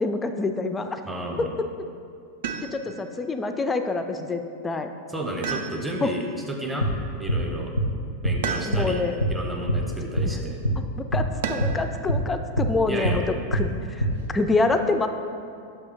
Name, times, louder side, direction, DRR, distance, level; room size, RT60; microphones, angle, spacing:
voice 1, 0.0-1.0 1.4-1.5 2.6-4.9 6.0-6.1 8.6-9.1 11.0-13.2 13.5-15.1, left 3 dB, 15° left, 7 dB, 0.3 m, -26 dB
voice 2, 1.0-1.5 5.1-6.9 7.2-7.7 8.2-9.0 9.3-10.6 12.9-13.2, right 1 dB, 5° right, 0 dB, 0.7 m, -32 dB
sound 1, 2.4-3.1 5.4-6.2 8.4-9.1 11.4-11.9 13.6-14.3, right 6 dB, 55° right, 0.4 m, -33 dB
sound 2, 6.8-7.0 7.3-7.4 7.8-7.9 8.2-8.4 8.7-8.9 9.2-9.4 9.7-9.8 10.2-10.3 10.6-10.8 11.1-11.3 11.6-11.8 12.1-12.2 12.6-12.7 13.0-13.2 13.5-13.7 14.0-14.2, right 1 dB, 85° left, 0.4 m, -23 dB
5.9 x 3.4 x 5.1 m, 2.5 s
figure-of-eight pair, 90°, 0 cm